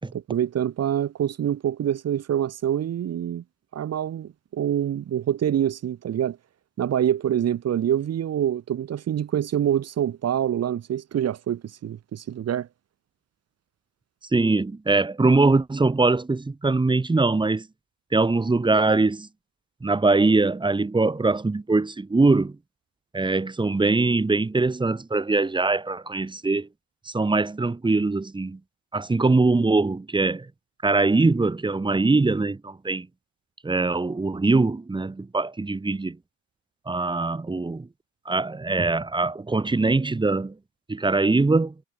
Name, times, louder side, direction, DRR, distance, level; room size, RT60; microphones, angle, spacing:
voice 1, 0.1-3.4 3.7-6.4 6.8-12.7, right 10 dB, 35° right, 6.0 m, -26 dB
voice 2, 14.3-17.7 18.1-19.3 19.8-22.6 23.1-26.7 27.1-28.6 28.9-30.5 30.8-33.1 33.6-36.2 36.9-37.9 38.3-40.5 40.9-41.7, right 3 dB, 10° right, 4.1 m, -22 dB
cardioid pair, 135°, 41 cm